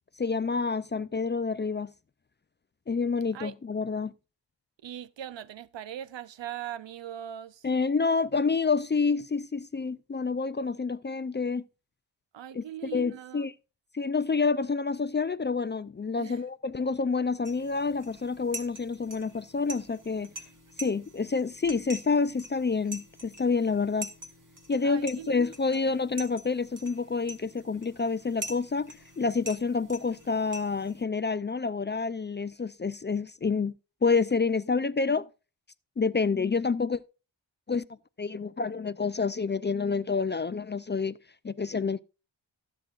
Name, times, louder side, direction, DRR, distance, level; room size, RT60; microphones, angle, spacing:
voice 1, 0.2-1.9 2.9-4.1 7.6-11.6 12.5-13.5 13.9-20.3 20.8-24.1 24.7-33.7 34.0-35.3 36.0-37.0 37.7-37.8 38.2-41.2 41.4-42.0, left 4 dB, 25° left, 0.4 m, -28 dB
voice 2, 4.8-7.7 12.3-13.4 16.2-16.4 24.8-25.4 25.7-25.8, right 10 dB, 70° right, 0.7 m, -40 dB
sound 1, 17.4-31.0, right 2 dB, 40° right, 2.1 m, -45 dB
16.0 x 7.7 x 2.4 m
cardioid pair, 40°, 45 cm